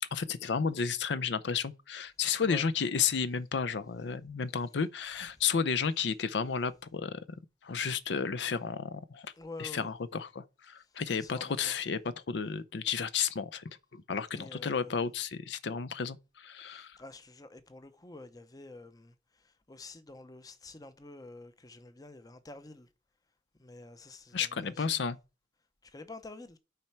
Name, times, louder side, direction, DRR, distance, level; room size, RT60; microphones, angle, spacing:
voice 1, 0.0-7.2 7.6-9.3 9.6-17.0 24.3-25.2, left 6 dB, 70° left, 0.5 m, -32 dB
voice 2, 9.4-9.9 11.2-11.7 14.3-15.0 16.7-22.9 23.6-25.0 25.8-26.6, left 2 dB, 20° left, 0.7 m, -48 dB
9.1 x 4.4 x 5.7 m
head